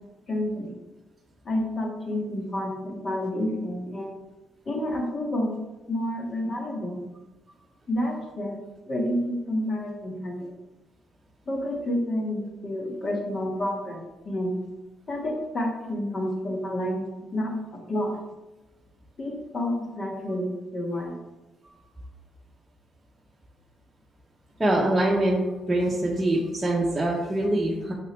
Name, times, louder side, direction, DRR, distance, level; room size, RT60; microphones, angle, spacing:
voice 1, 0.3-0.7 1.4-4.2 4.7-5.5 5.9-7.1 7.9-8.6 8.9-10.5 11.5-14.5 15.1-18.2 19.2-21.2, left 1 dB, 45° left, 0 dB, 1.9 m, -29 dB
voice 2, 24.6-25.4 25.7-27.9, right 1 dB, 15° right, -4 dB, 1.1 m, -24 dB
6.4 x 6.1 x 3.4 m, 1.1 s
cardioid pair, 90°, 0 cm